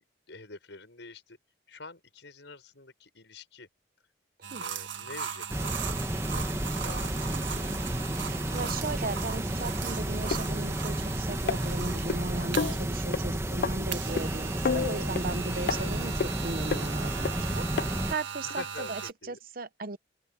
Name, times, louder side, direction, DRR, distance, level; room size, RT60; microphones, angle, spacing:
voice 1, 0.3-1.4 1.7-3.7 4.6-5.7 6.3-7.6 15.5-15.9 18.4-19.4, left 3 dB, 70° left, 5.9 m, -46 dB
sound 1, 4.4-13.0 13.9-19.1, right 7 dB, 75° right, 1.7 m, -39 dB
sound 2, 5.5-18.1, right 1 dB, 15° right, 1.3 m, -32 dB
voice 2, 7.3-7.8 8.2-20.0, right 3 dB, 50° right, 0.9 m, -37 dB
sound 3, 10.3-10.4 11.5-12.2 12.6-12.8 13.1-13.2 13.6-13.7 14.2-14.3 14.6-15.3 15.7-15.8 16.2-16.3 16.7-16.8 17.2-17.3 17.8-17.9 18.5-18.6, left 5 dB, 50° left, 0.4 m, -29 dB
open air
head